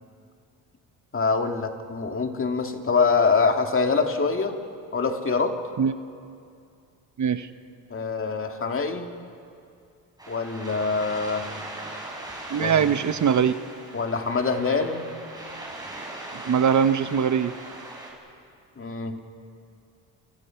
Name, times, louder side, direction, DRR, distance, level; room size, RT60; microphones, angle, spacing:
voice 1, 1.1-4.6 4.9-5.6 7.9-9.1 10.3-11.5 12.6-13.0 13.9-15.0 18.8-19.2, left 4 dB, 35° left, 4 dB, 2.3 m, -25 dB
voice 2, 7.2-7.5 12.5-13.5 16.4-17.5, right 7 dB, 50° right, 10 dB, 1.1 m, -21 dB
sound 1, 10.2-18.1, right 2 dB, 10° right, 7.2 m, -39 dB
28.5 x 26.5 x 5.8 m, 2.5 s
cardioid pair, 95°, 38 cm